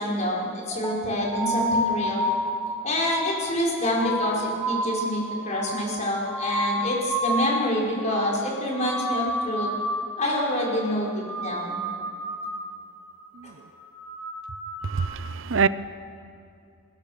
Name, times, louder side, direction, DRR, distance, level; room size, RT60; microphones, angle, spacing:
voice 1, 0.0-2.3 2.8-9.7 10.2-11.8, left 1 dB, 35° left, -3 dB, 5.8 m, -27 dB
sound 1, 0.7-7.7 7.9-8.5 8.7-10.2 10.5-10.9 11.2-12.7 13.0-13.4 13.7-15.1, equal, 5° left, 3.4 m, -30 dB
voice 2, 14.9-15.7, right 5 dB, 65° right, 15 dB, 0.6 m, -24 dB
25.5 x 21.0 x 6.8 m, 2.6 s
head